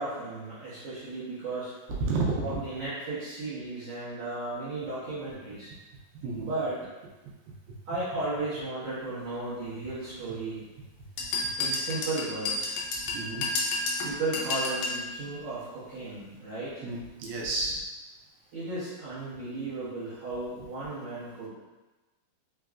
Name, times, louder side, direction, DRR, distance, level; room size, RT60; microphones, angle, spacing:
voice 1, 0.0-1.7 2.4-5.7 6.4-6.8 7.9-10.6 11.6-12.8 14.0-16.8 18.5-21.5, right 2 dB, 65° right, -13 dB, 1.6 m, -35 dB
voice 2, 2.0-2.6 6.2-6.5 13.1-13.4 16.8-17.8, right 3 dB, 85° right, -3 dB, 2.4 m, -30 dB
sound 1, 11.2-15.0, left 2 dB, 85° left, 1.9 m, -30 dB
5.7 x 2.3 x 2.4 m, 1.2 s
omnidirectional pair, 4.3 m